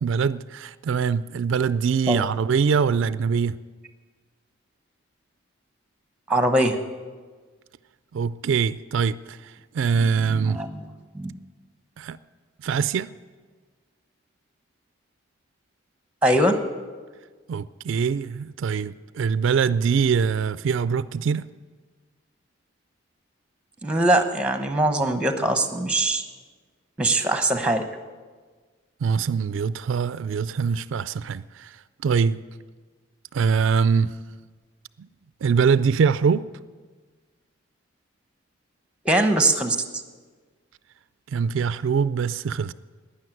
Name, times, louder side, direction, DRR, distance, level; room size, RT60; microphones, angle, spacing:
voice 1, 0.0-3.6 8.1-10.6 12.0-12.2 12.6-13.1 17.5-21.4 29.0-31.8 32.0-32.4 33.3-34.1 35.0-35.1 35.4-36.4 41.3-42.7, right 6 dB, 70° right, 16 dB, 0.3 m, -23 dB
voice 2, 6.3-6.8 10.3-10.9 11.1-11.3 16.2-16.5 23.8-26.3 27.0-27.8 39.0-39.8, right 1 dB, 5° right, 7 dB, 0.9 m, -21 dB
12.5 x 9.7 x 9.2 m, 1.5 s
head